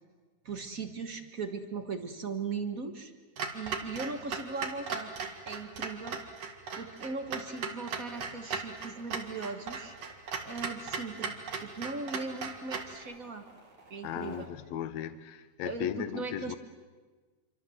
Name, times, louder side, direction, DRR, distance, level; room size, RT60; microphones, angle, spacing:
voice 1, 0.4-3.1 3.5-5.1 5.4-6.2 6.8-10.0 10.4-11.3 11.6-13.4 13.9-14.5 15.6-16.6, right 4 dB, 40° right, 1.2 m, -38 dB
Clock, 3.4-13.0, right 5 dB, 60° right, 3.1 m, -38 dB
sound 1, 8.1-14.4, right 3 dB, 75° right, 5.2 m, -57 dB
voice 2, 14.0-16.6, left 10 dB, 75° left, 2.2 m, -36 dB
27.5 x 25.0 x 7.8 m
omnidirectional pair, 3.3 m